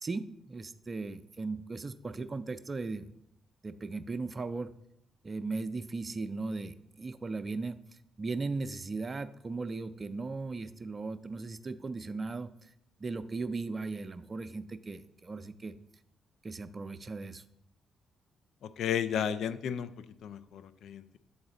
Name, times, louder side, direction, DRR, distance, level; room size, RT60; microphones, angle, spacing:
voice 1, 0.0-3.2 3.6-4.7 5.2-7.8 8.2-12.7 13.0-15.7 16.4-17.4, right 3 dB, 35° right, 12 dB, 0.5 m, -37 dB
voice 2, 18.8-19.9 20.2-21.2, left 8 dB, 65° left, 12 dB, 0.4 m, -33 dB
7.8 x 4.0 x 3.8 m, 0.75 s
hypercardioid pair, 40°, 0 cm